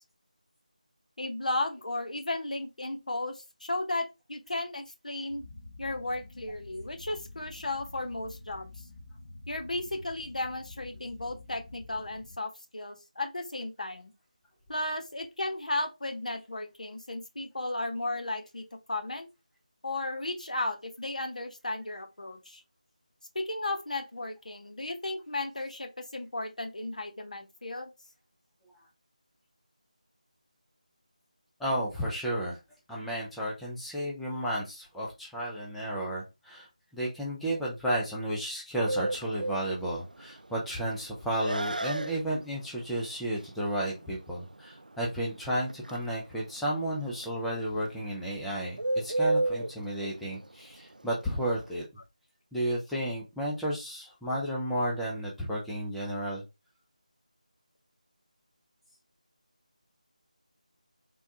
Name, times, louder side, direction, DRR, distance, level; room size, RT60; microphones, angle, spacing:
voice 1, 1.2-5.4 5.8-8.7 9.5-14.1 14.7-18.6 18.9-19.3 19.8-22.6 23.3-27.9, left 2 dB, 70° left, 0.8 m, -34 dB
sound 1, 5.3-12.4, left 2 dB, 30° left, 0.7 m, -48 dB
voice 2, 31.6-32.6 32.9-36.7 36.9-51.8 52.5-56.4, right 1 dB, ahead, 0.3 m, -32 dB
Bird, 38.9-51.8, right 2 dB, 90° right, 0.3 m, -34 dB
3.6 x 2.2 x 2.7 m
figure-of-eight pair, 165°, 4 cm